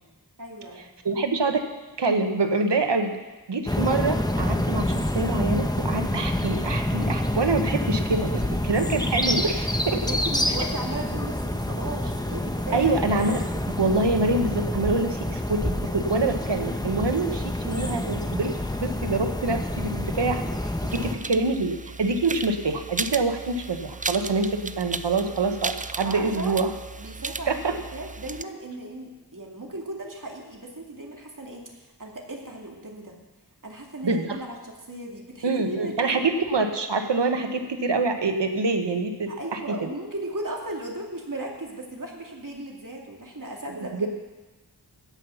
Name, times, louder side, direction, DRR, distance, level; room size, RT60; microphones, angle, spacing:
voice 1, 0.4-0.9 9.9-13.0 20.8-20.9 25.2-25.4 26.0-26.5 27.0-27.6 27.9-33.2 33.6-36.2 39.3-44.1, right 2 dB, 50° right, 0 dB, 2.5 m, -36 dB
voice 2, 1.0-1.7 2.0-3.1 3.5-8.3 8.7-10.0 12.7-13.4 13.7-26.7 27.5-27.7 34.0-34.4 35.4-39.9 43.8-44.1, right 3 dB, 85° right, 6 dB, 1.2 m, -26 dB
sound 1, 3.7-21.1, left 1 dB, 10° left, 1.1 m, -27 dB
sound 2, 20.9-28.4, right 3 dB, 20° right, 0.4 m, -35 dB
17.0 x 5.7 x 7.0 m, 1.2 s
wide cardioid pair, 45°, 41 cm